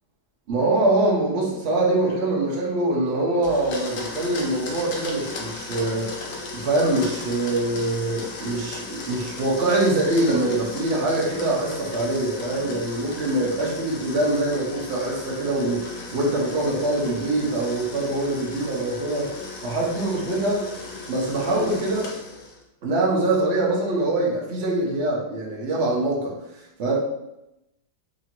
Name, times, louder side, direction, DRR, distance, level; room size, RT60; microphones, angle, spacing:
voice 1, 0.5-6.2 6.5-19.4 19.6-20.7 21.1-22.1 22.8-27.0, right 2 dB, 80° right, -2 dB, 0.5 m, -24 dB
Domestic sounds home sounds, 3.4-22.6, left 3 dB, 70° left, 0.8 m, -36 dB
2.9 x 2.6 x 2.8 m, 0.88 s
omnidirectional pair, 2.0 m